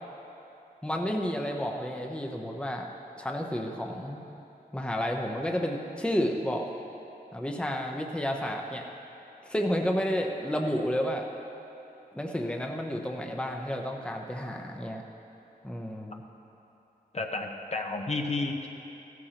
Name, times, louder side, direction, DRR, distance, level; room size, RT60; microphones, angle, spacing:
voice 1, 0.8-2.9 3.2-4.3 4.7-6.7 7.3-8.8 9.4-11.3 12.1-15.0 15.6-16.2, equal, 5° left, 1 dB, 0.8 m, -31 dB
voice 2, 17.1-18.7, left 3 dB, 40° left, 2 dB, 0.9 m, -31 dB
15.5 x 14.0 x 2.9 m, 2.9 s
wide cardioid pair, 95°, 16 cm